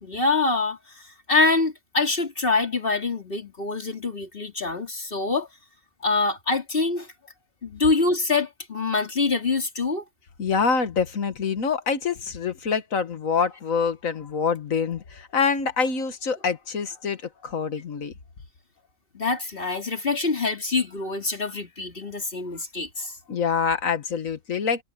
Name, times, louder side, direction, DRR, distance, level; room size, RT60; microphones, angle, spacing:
voice 1, 0.0-5.5 6.0-7.1 7.6-10.0 19.1-23.2, left 3 dB, 40° left, 3.4 m, -25 dB
voice 2, 10.4-18.1 23.3-24.8, left 5 dB, 70° left, 1.9 m, -26 dB
omnidirectional pair, 1.4 m